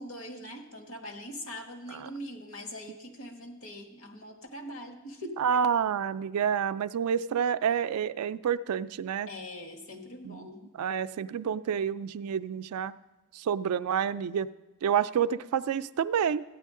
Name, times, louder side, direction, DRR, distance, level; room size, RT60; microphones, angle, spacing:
voice 1, 0.0-5.6 9.3-10.7, left 1 dB, 65° left, 4 dB, 1.2 m, -42 dB
voice 2, 5.4-9.3 10.2-10.4 10.8-12.9 13.3-14.5 14.8-16.4, right 8 dB, 90° right, 13 dB, 0.3 m, -28 dB
14.0 x 9.9 x 3.7 m, 1.2 s
head